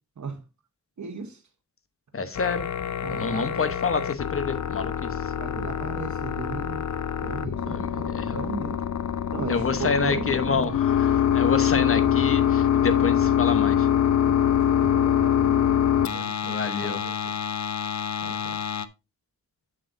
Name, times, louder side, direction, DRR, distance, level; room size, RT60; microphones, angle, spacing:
voice 1, 1.0-1.4 3.0-3.6 5.4-6.8 7.2-8.8 9.3-10.8 11.7-11.9 14.3-15.9 16.1-17.4 18.2-18.6, right 4 dB, 65° right, 1.1 m, -37 dB
voice 2, 2.1-2.7 3.1-5.1 7.7-8.4 9.5-13.9 16.5-17.0, left 5 dB, 45° left, 1.0 m, -28 dB
sound 1, 2.4-18.9, left 9 dB, 65° left, 0.6 m, -25 dB
7.6 x 7.5 x 2.6 m
wide cardioid pair, 100°, 31 cm